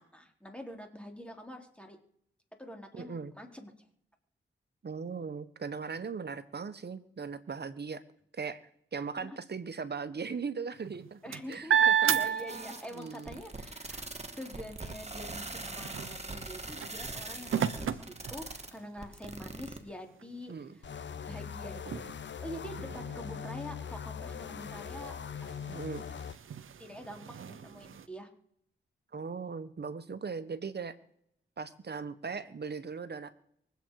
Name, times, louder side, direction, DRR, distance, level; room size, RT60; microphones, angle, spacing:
voice 1, 0.0-2.0 2.6-3.9 9.2-9.4 11.2-22.1 22.4-25.8 26.8-28.3, equal, 5° left, 3 dB, 3.9 m, -46 dB
voice 2, 2.9-3.3 4.8-8.0 8.3-8.6 8.9-11.2 11.5-12.1 12.9-13.4 20.5-20.8 25.7-26.1 29.1-31.0 31.6-33.3, right 5 dB, 55° right, 12 dB, 1.5 m, -39 dB
sound 1, 10.8-13.1 13.6-19.0 19.6-19.7 20.1-28.1, right 8 dB, 85° right, 0.9 m, -34 dB
sound 2, 12.5-19.8, right 2 dB, 30° right, 2.4 m, -42 dB
sound 3, 20.8-26.4, left 7 dB, 65° left, 0.7 m, -41 dB
24.5 x 8.3 x 4.9 m, 0.70 s
cardioid pair, 55°, 20 cm